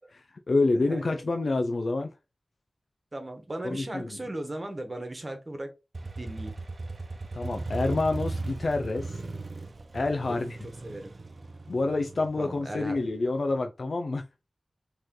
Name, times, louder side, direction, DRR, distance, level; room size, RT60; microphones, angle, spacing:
voice 1, 0.1-2.1 3.6-4.1 7.3-9.2 9.9-10.6 11.7-14.2, left 3 dB, 65° left, 0.5 m, -28 dB
voice 2, 0.7-1.2 3.1-5.7 6.2-6.6 10.3-11.1 12.4-13.0, right 1 dB, 35° right, 1.4 m, -37 dB
Motorcycle, 5.9-13.6, right 2 dB, 60° right, 0.8 m, -37 dB
4.3 x 3.2 x 3.8 m
cardioid pair, 50°, 0 cm